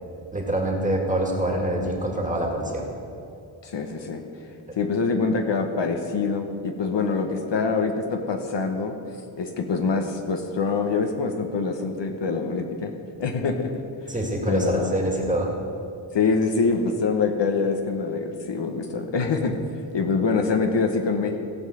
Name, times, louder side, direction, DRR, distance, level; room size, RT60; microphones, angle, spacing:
voice 1, 0.3-2.9 14.1-15.5, right 1 dB, 15° right, 0 dB, 2.3 m, -25 dB
voice 2, 3.6-4.2 4.8-9.0 9.4-12.9 13.2-13.7 14.5-14.9 16.1-19.6 19.9-21.4, left 4 dB, 65° left, 4 dB, 1.2 m, -25 dB
16.5 x 5.5 x 7.9 m, 2.8 s
wide cardioid pair, 95°, 47 cm